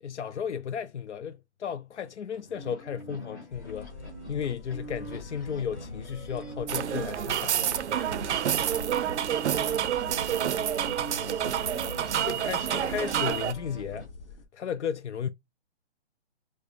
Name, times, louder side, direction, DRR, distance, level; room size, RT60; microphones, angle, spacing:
voice 1, 0.0-3.9 4.3-7.6 12.3-14.1 14.5-15.3, left 8 dB, 90° left, 0.5 m, -34 dB
sound 1, 2.3-14.1, right 2 dB, 20° left, 0.6 m, -43 dB
sound 2, 3.5-14.5, left 3 dB, 55° left, 1.1 m, -45 dB
sound 3, 6.7-13.5, right 10 dB, 85° right, 0.5 m, -28 dB
voice 2, 8.1-8.2, equal, 5° right, 1.1 m, -53 dB
4.9 x 2.1 x 2.6 m
hypercardioid pair, 170°, 34 cm